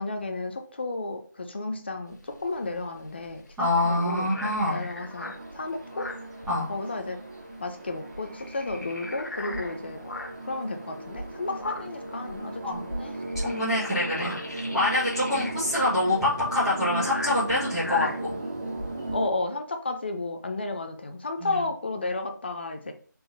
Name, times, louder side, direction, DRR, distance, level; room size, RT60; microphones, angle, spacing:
voice 1, 0.0-3.4 3.8-4.3 4.7-6.1 6.7-7.2 7.6-10.0 10.4-13.2 15.3-15.4 19.1-22.9, left 2 dB, 35° left, 6 dB, 0.6 m, -32 dB
sound 1, 2.1-7.1 7.3-7.5 7.9-10.5 11.0-19.2, left 1 dB, 60° left, 1.2 m, -39 dB
voice 2, 3.6-4.8 6.5-6.7 12.6-12.8 13.4-18.3 21.4-21.6, left 1 dB, 5° right, -14 dB, 1.6 m, -26 dB
sound 2, 3.7-19.3, right 2 dB, 35° right, 1.0 m, -37 dB
4.2 x 3.8 x 3.2 m, 0.44 s
figure-of-eight pair, 165°, 10 cm